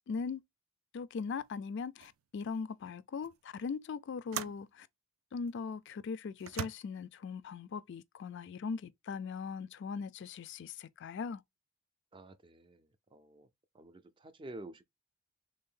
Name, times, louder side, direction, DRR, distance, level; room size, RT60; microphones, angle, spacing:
voice 1, 0.1-0.4 0.9-4.9 5.3-11.4, left 5 dB, 60° left, 0.4 m, -40 dB
sound 1, 1.4-1.6 2.0-2.2 3.2-3.4 4.3-4.7 5.5-5.6 6.4-6.7, right 9 dB, 90° right, 0.3 m, -41 dB
voice 2, 12.1-12.9 13.1-13.5 13.7-14.8, right 2 dB, 25° right, 0.4 m, -49 dB
3.4 x 2.6 x 3.7 m
head